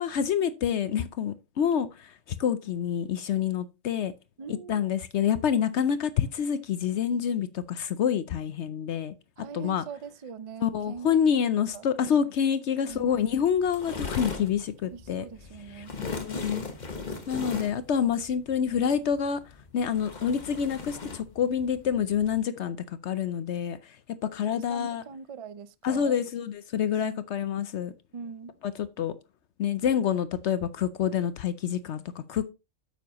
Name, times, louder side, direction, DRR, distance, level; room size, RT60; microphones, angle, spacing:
voice 1, 0.0-4.1 4.7-9.1 9.5-9.8 10.6-15.2 15.8-16.6 17.3-19.4 19.7-24.0 24.2-25.0 25.8-27.9 28.6-29.1 29.6-32.5, left 8 dB, 65° left, 0.8 m, -27 dB
voice 2, 4.4-4.8 9.4-11.5 11.7-12.2 12.8-13.2 14.9-15.9 24.5-26.2 27.0-27.2 28.1-28.6, right 6 dB, 55° right, 0.3 m, -42 dB
sound 1, 12.9-22.4, left 4 dB, 35° left, 1.3 m, -39 dB
8.9 x 7.2 x 2.9 m
omnidirectional pair, 1.3 m